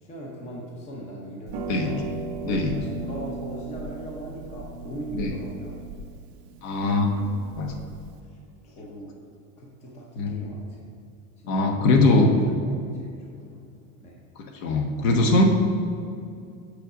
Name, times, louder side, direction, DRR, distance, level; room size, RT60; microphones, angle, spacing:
voice 1, 0.0-2.0 2.4-5.8 7.1-7.4 8.6-9.1 9.6-10.8 11.5-11.7 12.3-13.2 13.5-13.6 14.0-14.1, right 1 dB, 15° left, -3 dB, 0.7 m, -39 dB
Harp, 1.5-8.2, right 4 dB, 45° right, 0.7 m, -37 dB
voice 2, 2.4-2.7 5.1-5.3 6.6-7.1 7.6-7.8 10.2-10.5 11.5-12.3 14.6-15.4, left 2 dB, 55° left, 3 dB, 1.2 m, -21 dB
6.6 x 6.5 x 4.9 m, 2.5 s
supercardioid pair, 170°, 47 cm